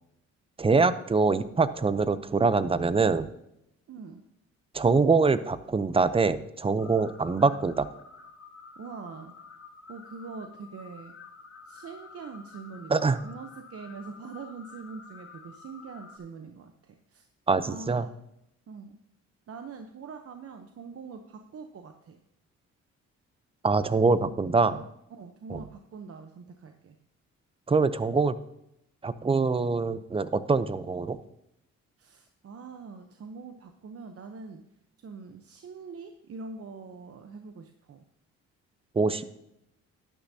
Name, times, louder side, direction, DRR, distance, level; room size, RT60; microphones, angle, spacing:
voice 1, 0.6-3.3 4.7-7.9 12.9-13.2 17.5-18.1 23.6-24.8 25.5-25.6 27.7-28.4 29.0-31.2 38.9-39.2, right 4 dB, 20° right, 14 dB, 0.6 m, -24 dB
voice 2, 3.9-4.2 8.8-9.3 9.9-11.1 11.7-17.3 17.6-18.1 18.7-19.0 19.5-22.2 24.3-24.8 25.1-27.0 32.0-34.6 35.0-38.0, right 4 dB, 50° right, 6 dB, 0.9 m, -43 dB
sound 1, 6.8-16.2, left 5 dB, 50° left, 2.7 m, -50 dB
12.0 x 10.0 x 2.8 m, 0.82 s
cardioid pair, 90°, 30 cm